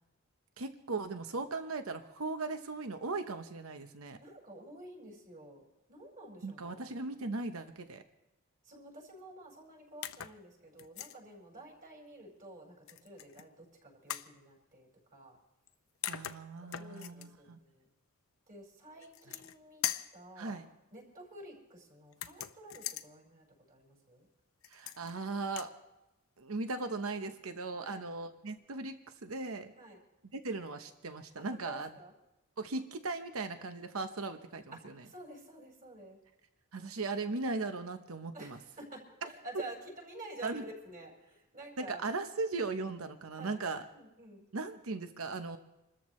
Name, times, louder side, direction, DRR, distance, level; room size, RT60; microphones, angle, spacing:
voice 1, 0.6-4.2 6.4-8.0 16.1-17.6 20.4-20.7 24.7-25.7 26.4-29.7 30.3-31.9 32.6-35.0 36.7-38.6 39.2-39.3 40.4-40.6 41.8-43.9 44.5-45.6, right 3 dB, 90° right, 8 dB, 0.9 m, -38 dB
voice 2, 4.2-5.6 5.9-7.0 8.6-15.4 16.4-17.9 18.5-19.8 20.1-20.6 20.9-24.3 27.8-28.1 29.8-30.0 31.4-32.1 34.7-34.8 35.0-36.2 38.3-42.0 43.4-43.6 43.9-44.4, right 1 dB, 40° right, -1 dB, 5.2 m, -50 dB
sound 1, 10.0-10.4 10.8-11.2 12.9-13.5 14.1-14.3 15.7-15.8 16.0-17.3 19.0-19.6 19.8-20.2 22.1-23.1 24.6-25.2 25.5-25.7, left 11 dB, 75° left, 0.6 m, -40 dB
28.0 x 13.5 x 3.2 m, 0.93 s
head